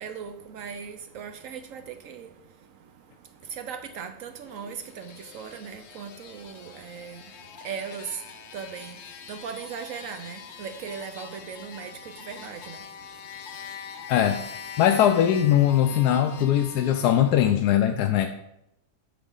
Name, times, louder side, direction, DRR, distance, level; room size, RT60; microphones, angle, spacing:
voice 1, 0.0-2.3 3.6-7.2 7.6-8.0 8.5-8.9 9.3-11.9 12.3-12.8, right 6 dB, 65° right, 9 dB, 0.9 m, -38 dB
sound 1, 4.3-17.5, left 7 dB, 55° left, 0.8 m, -43 dB
voice 2, 14.1-14.4 14.8-18.3, left 10 dB, 80° left, 6 dB, 1.1 m, -21 dB
7.6 x 7.1 x 3.8 m, 0.81 s
omnidirectional pair, 1.7 m